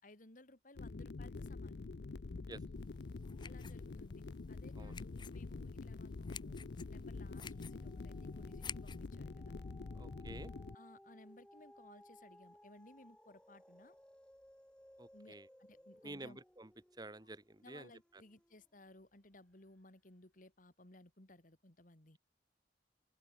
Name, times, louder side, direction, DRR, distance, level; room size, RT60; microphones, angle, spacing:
voice 1, 0.0-1.8 3.4-9.6 10.7-14.0 15.1-16.4 17.2-17.3 17.6-22.2, left 2 dB, 50° left, 2.7 m, -60 dB
sound 1, 0.8-10.7, left 3 dB, 65° left, 0.6 m, -46 dB
sound 2, 2.7-9.1, left 7 dB, 25° left, 0.8 m, -53 dB
sound 3, 6.8-19.1 19.7-19.8, equal, 5° left, 3.3 m, -63 dB
voice 2, 9.9-10.5 15.0-15.5 16.0-16.7 17.0-17.9, right 2 dB, 25° right, 1.6 m, -50 dB
open air
head